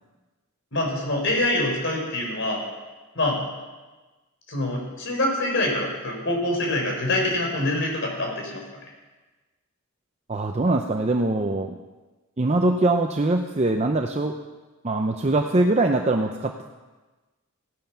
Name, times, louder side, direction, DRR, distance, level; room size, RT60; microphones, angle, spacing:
voice 1, 0.7-2.6 3.1-3.4 4.5-8.6, left 1 dB, 55° left, 0 dB, 4.1 m, -25 dB
voice 2, 10.3-11.8 12.4-14.3 14.8-16.7, right 2 dB, 30° right, 4 dB, 0.6 m, -22 dB
16.0 x 9.0 x 5.8 m, 1.2 s
head